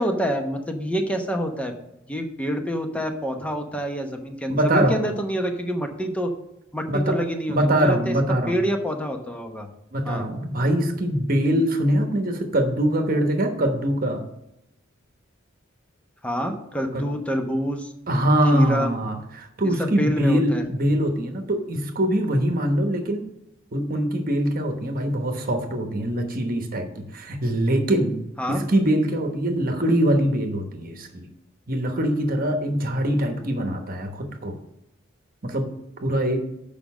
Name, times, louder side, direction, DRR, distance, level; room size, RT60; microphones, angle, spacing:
voice 1, 0.0-1.7 2.1-6.3 6.7-9.7 10.0-10.3 16.2-17.9 18.5-18.9 19.8-20.6 28.4-28.6, equal, 5° left, 4 dB, 0.9 m, -27 dB
voice 2, 4.5-5.0 6.9-7.2 7.5-8.6 9.9-14.2 16.9-17.0 18.1-23.2 23.7-28.2 28.5-31.3 31.7-34.6 35.4-35.7 36.0-36.5, right 1 dB, 45° right, 5 dB, 1.1 m, -23 dB
6.8 x 5.2 x 7.1 m, 0.85 s
head